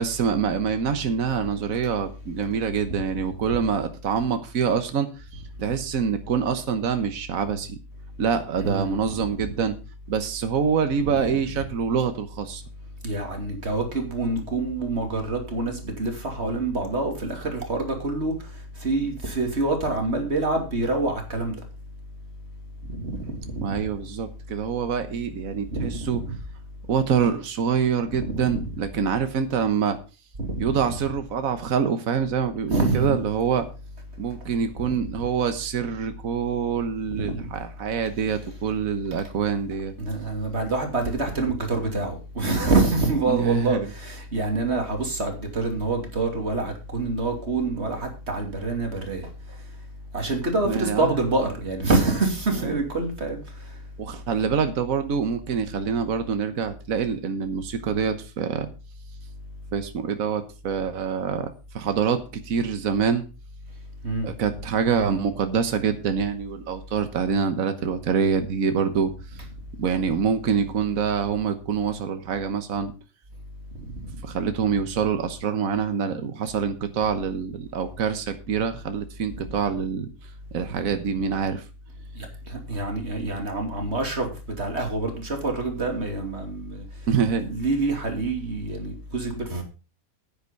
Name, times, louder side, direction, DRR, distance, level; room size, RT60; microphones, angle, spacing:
voice 1, 0.0-7.8 8.2-9.7 10.1-12.6 23.6-26.2 26.9-30.0 30.6-33.7 34.2-39.9 43.3-43.9 50.6-51.2 52.7-52.8 54.0-58.7 59.7-63.2 64.2-69.1 69.8-72.9 74.2-80.1 80.5-81.6 87.1-87.4, right 6 dB, 75° right, 1.5 m, -25 dB
voice 2, 8.6-9.0 11.1-11.4 13.0-18.3 18.8-21.6 22.9-23.8 25.7-26.4 28.1-28.7 30.4-30.7 32.7-33.2 34.7-34.9 37.1-37.3 40.0-49.3 50.1-53.4 64.0-64.3 73.8-74.1 79.6-79.7 80.7-80.9 82.1-84.3 84.6-86.8 87.4-89.6, right 2 dB, 50° right, 3.1 m, -26 dB
10.0 x 9.7 x 5.2 m
omnidirectional pair, 1.5 m